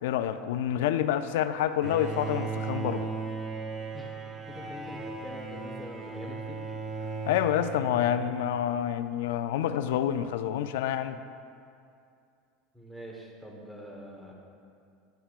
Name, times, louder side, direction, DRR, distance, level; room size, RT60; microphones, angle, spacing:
voice 1, 0.0-3.1 7.3-11.2, left 10 dB, 85° left, 11 dB, 0.3 m, -28 dB
Bowed string instrument, 1.8-8.6, right 4 dB, 20° right, 0.6 m, -37 dB
voice 2, 4.5-6.6 7.3-7.5 12.7-14.3, equal, ahead, -2 dB, 1.1 m, -44 dB
11.5 x 5.5 x 2.4 m, 2.5 s
supercardioid pair, 145°, 0 cm